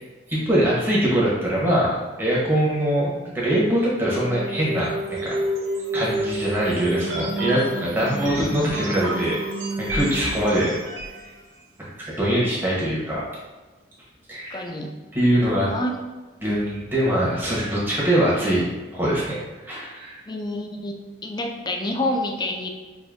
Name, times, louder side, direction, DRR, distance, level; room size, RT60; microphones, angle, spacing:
voice 1, 0.3-5.3 5.9-9.4 9.8-10.7 12.0-13.2 14.3-14.6 15.1-15.7 16.4-18.7 18.9-20.2, right 1 dB, 10° right, -7 dB, 1.0 m, -23 dB
sound 1, 4.1-11.2, right 1 dB, 90° right, 0.7 m, -29 dB
voice 2, 14.5-14.9 15.7-16.0 16.5-16.6 20.3-20.9 21.2-22.7, left 1 dB, 25° left, 3 dB, 0.4 m, -27 dB
4.9 x 2.6 x 2.5 m, 1.2 s
head